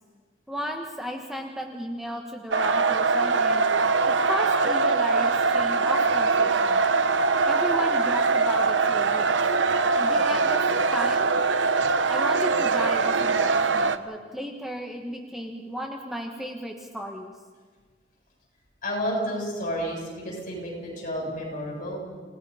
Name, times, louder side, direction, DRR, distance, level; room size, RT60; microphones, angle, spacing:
voice 1, 0.5-3.6 4.1-6.8 7.4-9.2 10.0-10.6 10.9-11.3 12.1-17.3, equal, ahead, 2 dB, 1.3 m, -34 dB
sound 1, 2.5-14.0, right 4 dB, 80° right, 1.0 m, -22 dB
voice 2, 18.8-22.0, equal, 45° left, -1 dB, 7.8 m, -31 dB
29.0 x 18.0 x 5.7 m, 1.5 s
head